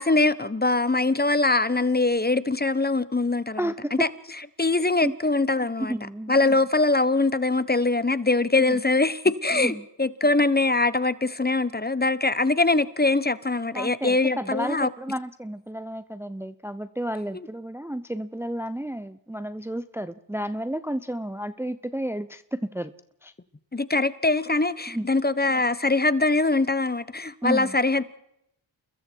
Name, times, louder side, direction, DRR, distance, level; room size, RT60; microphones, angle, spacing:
voice 1, 0.0-3.6 3.9-4.1 4.6-5.9 6.3-14.9 23.7-28.0, left 2 dB, 20° left, 1.0 m, -22 dB
voice 2, 3.6-4.1 5.0-5.1 5.9-6.4 8.7-8.8 9.5-9.8 13.7-22.9 23.2-23.3 24.9-25.1 27.4-27.8, right 1 dB, 5° right, 0.7 m, -31 dB
29.0 x 21.5 x 4.6 m
cardioid pair, 55°, 46 cm